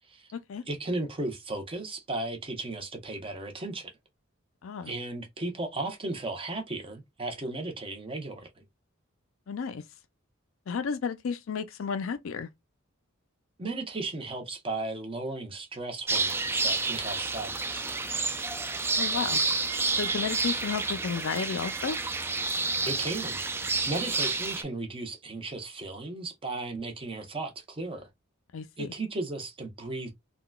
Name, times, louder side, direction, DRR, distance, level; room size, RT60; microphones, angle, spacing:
voice 1, 0.7-3.9 4.8-8.5 13.6-17.9 22.8-23.4 23.9-28.1 28.8-30.1, right 2 dB, 25° right, 0.8 m, -35 dB
voice 2, 9.5-9.8 10.7-12.5 19.0-19.4 20.0-22.0 28.5-28.9, left 6 dB, 70° left, 0.4 m, -32 dB
sound 1, 16.1-24.6, right 3 dB, 10° right, 0.3 m, -29 dB
3.8 x 2.3 x 2.2 m
head